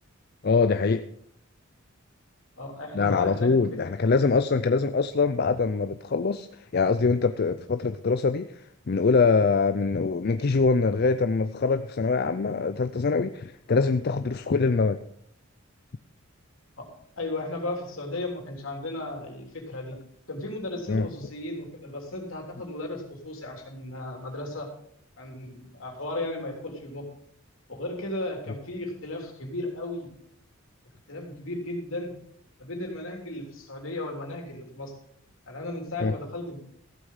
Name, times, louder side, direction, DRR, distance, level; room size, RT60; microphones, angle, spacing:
voice 1, 0.4-1.1 2.9-15.0 20.9-21.1 36.0-36.1, left 4 dB, 50° left, 10 dB, 0.5 m, -24 dB
voice 2, 2.6-3.5 3.8-3.9 16.8-16.9 17.2-20.0 20.3-24.7 25.2-27.1 27.7-30.1 31.1-32.1 32.6-34.9 35.5-36.6, left 2 dB, 70° left, 1 dB, 3.4 m, -35 dB
15.0 x 8.1 x 5.6 m, 0.70 s
head